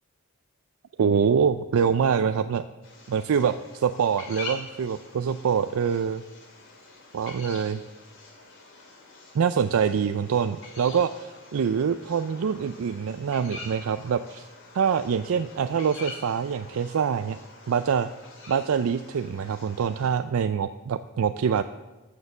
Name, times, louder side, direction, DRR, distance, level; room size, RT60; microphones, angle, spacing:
voice 1, 1.0-2.6 3.1-6.2 7.1-7.8 9.3-14.5 14.7-17.4 17.7-18.1 18.5-21.6, right 7 dB, 70° right, 11 dB, 0.4 m, -25 dB
sound 1, 2.8-20.1, left 3 dB, 60° left, 2.6 m, -45 dB
13.5 x 6.6 x 7.0 m, 1.2 s
head